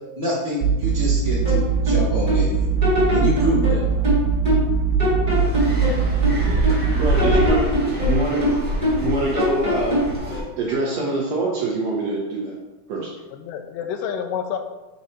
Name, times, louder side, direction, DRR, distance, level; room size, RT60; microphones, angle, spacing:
voice 1, 0.1-2.7 3.1-4.0, equal, 70° left, -9 dB, 0.5 m, -26 dB
sound 1, 0.6-7.5, right 6 dB, 85° right, 2.3 m, -21 dB
sound 2, 1.4-2.5 2.8-4.7 5.0-6.8 7.2-9.1 9.4-10.2, left 1 dB, 25° right, 1.2 m, -23 dB
sound 3, 5.3-10.4, left 1 dB, 5° right, 0.7 m, -27 dB
voice 2, 6.9-8.5 9.0-10.0 10.6-12.5 12.9-13.1, right 2 dB, 70° right, -3 dB, 1.6 m, -24 dB
voice 3, 13.3-14.6, left 8 dB, 85° left, 6 dB, 2.2 m, -29 dB
6.5 x 3.9 x 4.2 m, 1.1 s
omnidirectional pair, 3.8 m